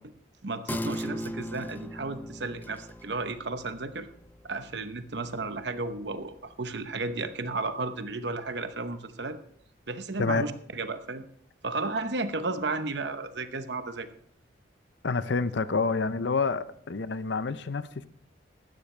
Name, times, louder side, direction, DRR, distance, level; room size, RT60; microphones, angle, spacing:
voice 1, 0.4-4.1 4.4-9.4 9.9-11.3 11.6-14.1, right 3 dB, 70° right, 0.9 m, -33 dB
sound 1, 0.7-7.7 8.1-8.2, equal, 10° left, 0.4 m, -40 dB
voice 2, 15.0-18.1, left 4 dB, 75° left, 0.6 m, -28 dB
16.0 x 12.0 x 3.3 m
head